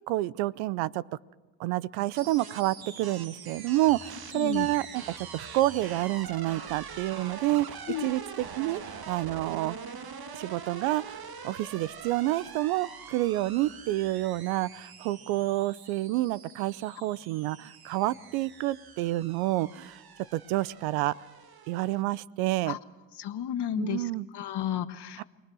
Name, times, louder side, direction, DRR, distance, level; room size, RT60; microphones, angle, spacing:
voice 1, 0.1-1.0 1.6-5.0 5.3-9.8 10.3-11.2 11.4-20.0 20.3-21.1 21.7-22.8 23.8-24.3 25.2-25.3, right 17 dB, 85° right, 20 dB, 0.8 m, -29 dB
sound 1, 2.1-22.0, right 6 dB, 50° right, 2.0 m, -44 dB
voice 2, 4.3-4.7 7.9-8.1 22.7-22.8 23.2-25.2, left 11 dB, 55° left, 10 dB, 1.6 m, -33 dB
29.5 x 21.5 x 6.2 m, 1.3 s
supercardioid pair, 70°, 47 cm